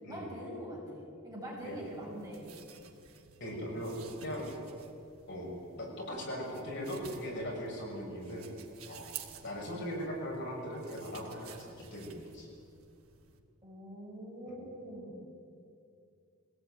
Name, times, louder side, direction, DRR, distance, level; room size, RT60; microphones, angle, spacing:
voice 1, 0.1-2.6 13.6-15.1, equal, 15° right, -4 dB, 6.0 m, -43 dB
sound 1, 1.6-13.4, right 8 dB, 80° right, 2.3 m, -53 dB
voice 2, 3.4-3.9 4.2-4.5 5.3-8.5 8.9-9.1 9.4-12.5 14.5-14.6, equal, 55° left, -2 dB, 6.5 m, -39 dB
23.0 x 18.0 x 9.4 m, 2.5 s
head